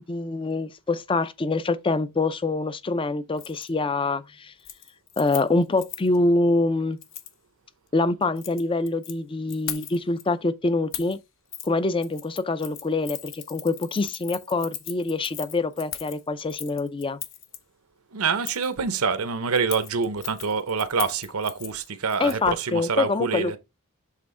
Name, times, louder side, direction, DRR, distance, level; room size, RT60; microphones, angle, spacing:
voice 1, 0.1-4.5 5.2-7.0 7.9-11.2 11.6-17.2 22.2-23.6, left 3 dB, 25° left, 0.4 m, -25 dB
Keys jangling, 3.4-3.7 4.0-4.3 4.6-6.2 7.0-7.3 8.2-9.1 9.5-10.2 10.9-11.2 11.5-11.7 12.0-17.6 18.4-18.7 19.6-22.6 22.9-23.0, left 11 dB, 60° left, 0.9 m, -38 dB
voice 2, 18.1-23.6, right 5 dB, 75° right, 0.8 m, -26 dB
7.4 x 3.5 x 3.7 m
head